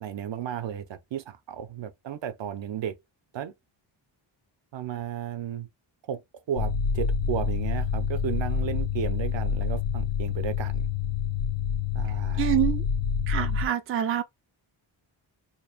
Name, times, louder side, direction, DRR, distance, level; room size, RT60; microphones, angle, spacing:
voice 1, 0.0-2.9 3.3-3.5 4.7-5.7 6.1-6.2 6.5-10.9 11.9-12.5, right 9 dB, 65° right, 0.7 m, -34 dB
sound 1, 6.6-13.7, left 6 dB, 60° left, 0.6 m, -27 dB
voice 2, 12.4-12.8 13.3-14.2, right 11 dB, 30° right, 0.4 m, -26 dB
2.9 x 2.5 x 4.3 m
wide cardioid pair, 175°, 48 cm